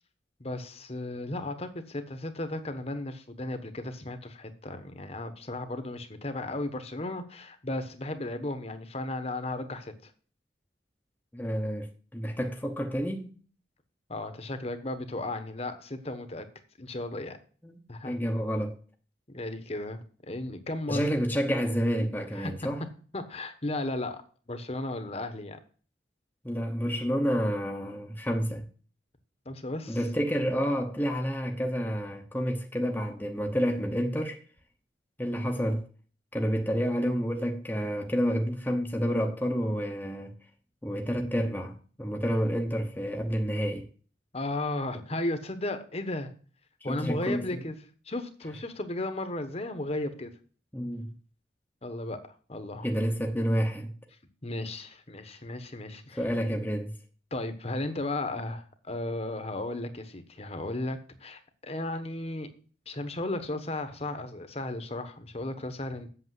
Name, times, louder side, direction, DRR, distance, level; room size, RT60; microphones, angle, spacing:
voice 1, 0.4-10.1 14.1-16.4 16.8-17.4 17.9-18.1 19.3-21.2 22.3-22.5 23.1-24.2 24.5-25.6 29.4-30.0 44.3-46.3 46.8-47.7 48.1-50.3 51.8-52.2 52.5-52.9 54.4-56.2 57.3-62.5 62.9-66.1, left 2 dB, 35° left, 1.2 m, -35 dB
voice 2, 11.3-13.3 17.6-17.8 18.0-18.7 20.9-22.8 26.4-28.6 29.9-34.4 35.2-35.9 36.3-40.3 40.8-43.9 46.8-47.6 50.7-51.2 52.8-53.9 56.1-56.9, equal, 10° left, 0.9 m, -29 dB
8.1 x 7.0 x 7.7 m
head